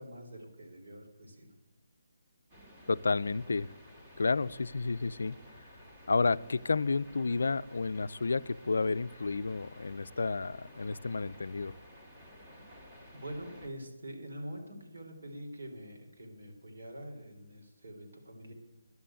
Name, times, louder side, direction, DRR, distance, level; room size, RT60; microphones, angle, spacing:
voice 1, 0.0-1.5 13.1-18.5, equal, 70° right, 2 dB, 3.4 m, -45 dB
sound 1, 2.5-13.7, left 1 dB, 25° right, 2.1 m, -54 dB
voice 2, 2.9-3.7 4.2-5.4 6.1-11.7, left 4 dB, 70° left, 17 dB, 0.4 m, -31 dB
11.0 x 6.9 x 8.8 m, 1.0 s
hypercardioid pair, 170°, 0 cm